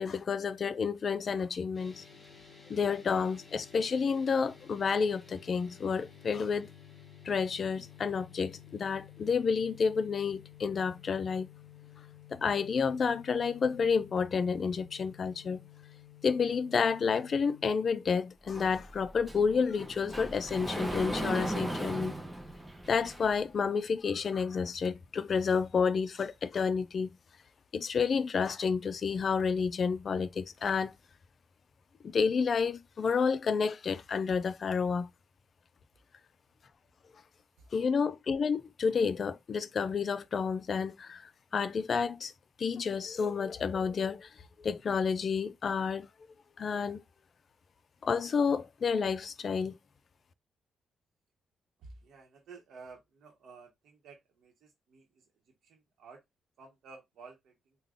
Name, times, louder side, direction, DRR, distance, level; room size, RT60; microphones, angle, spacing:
voice 1, 0.0-2.0 2.7-6.7 7.2-11.5 12.3-15.6 16.2-22.2 22.9-27.2 27.7-30.9 32.0-35.1 37.7-42.3 42.6-44.3 44.6-46.1 46.6-47.0 48.0-49.8, left 5 dB, 50° left, 0.4 m, -30 dB
sound 1, 1.7-17.7, left 9 dB, 30° left, 1.2 m, -53 dB
Sliding door, 18.5-23.5, right 1 dB, 10° right, 0.7 m, -37 dB
voice 2, 51.8-55.2 55.6-56.2 56.6-57.8, right 4 dB, 75° right, 0.9 m, -53 dB
3.7 x 2.2 x 3.4 m
cardioid pair, 110°, 0 cm